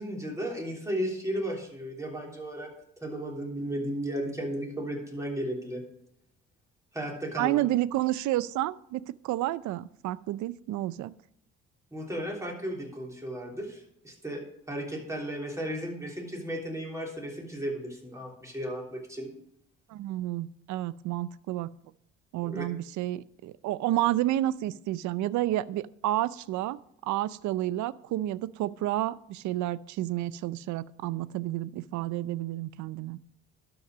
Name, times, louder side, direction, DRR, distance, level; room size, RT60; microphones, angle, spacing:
voice 1, 0.0-2.7 3.0-5.8 6.9-7.6 11.9-14.4 14.7-19.3 22.4-22.6, right 1 dB, 10° right, -1 dB, 3.3 m, -34 dB
voice 2, 7.4-11.1 19.9-21.7 22.3-33.2, right 15 dB, 70° right, 19 dB, 0.5 m, -30 dB
12.0 x 5.8 x 6.1 m, 0.73 s
cardioid pair, 90°, 30 cm